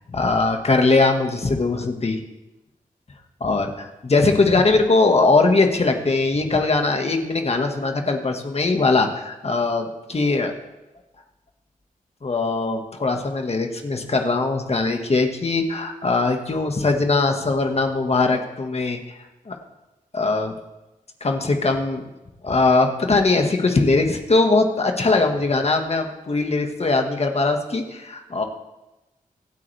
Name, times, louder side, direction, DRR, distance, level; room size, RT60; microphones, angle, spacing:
voice 1, 0.1-2.2 3.4-10.5 12.2-19.1 19.5-19.6 20.1-20.5 21.2-22.1 22.4-28.4, left 3 dB, 45° left, 4 dB, 1.8 m, -21 dB
25.5 x 8.7 x 3.5 m, 1.0 s
cardioid pair, 65°, 14 cm